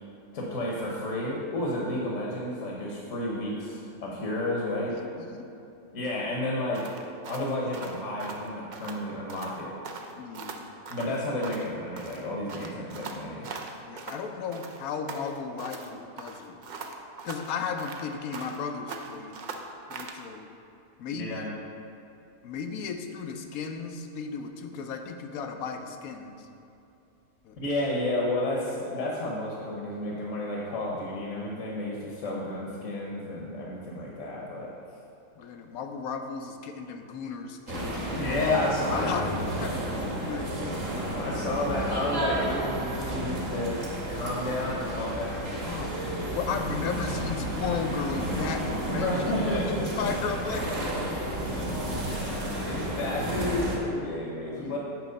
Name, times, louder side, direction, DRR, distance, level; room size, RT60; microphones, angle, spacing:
voice 1, 0.3-4.9 5.9-6.8 7.3-9.7 10.9-13.5 21.2-21.5 27.6-34.7 38.1-39.1 41.1-45.7 48.9-50.1 52.1-54.8, left 1 dB, 65° left, -4 dB, 1.3 m, -31 dB
voice 2, 5.0-5.6 10.2-10.7 13.8-16.6 17.2-19.4 19.9-20.5 21.0-21.4 22.4-26.5 27.4-27.6 32.2-32.4 35.4-38.0 38.3-38.5 38.9-39.7 40.3-40.9 45.6-46.0 46.3-50.7 51.0-51.3 54.6-54.8, left 5 dB, 80° left, 5 dB, 1.1 m, -35 dB
sound 1, 6.7-9.0 9.3-9.6 9.8-11.7 12.0-14.2 14.5-15.9 16.2-18.6 18.9-20.2, right 4 dB, 65° right, 0.4 m, -41 dB
sound 2, 37.7-53.8, right 1 dB, 45° right, 1.4 m, -32 dB
9.1 x 3.0 x 6.5 m, 2.7 s
omnidirectional pair, 1.5 m